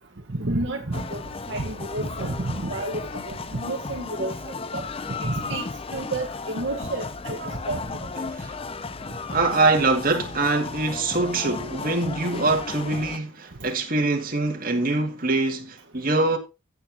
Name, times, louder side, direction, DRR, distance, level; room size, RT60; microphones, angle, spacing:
voice 1, 0.3-1.2 1.5-4.9 5.2-5.6 5.9-7.4 7.7-8.1, right 2 dB, 65° right, 1.3 m, -30 dB
sound 1, 0.9-13.2, left 4 dB, 30° left, 0.5 m, -35 dB
voice 2, 7.3-7.6 8.2-8.5 9.3-16.4, right 2 dB, 45° right, 2.1 m, -24 dB
16.0 x 6.8 x 2.8 m
head